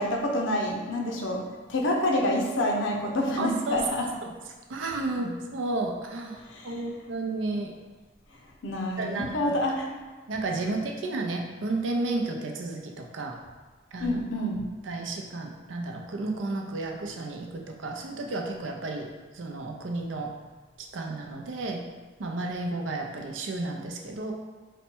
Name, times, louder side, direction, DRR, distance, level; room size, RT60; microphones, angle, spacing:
voice 1, 0.0-4.1 6.5-6.7 8.6-9.9 14.0-14.6, left 1 dB, 85° left, 1 dB, 0.6 m, -27 dB
voice 2, 3.4-3.8 4.2-4.3 4.7-7.7 9.0-9.5 10.3-13.4 13.9-14.2 14.9-19.1 19.3-20.3 20.9-21.8 22.2-24.3, right 2 dB, 85° right, 2 dB, 0.6 m, -32 dB
4.1 x 2.2 x 4.4 m, 1.3 s
head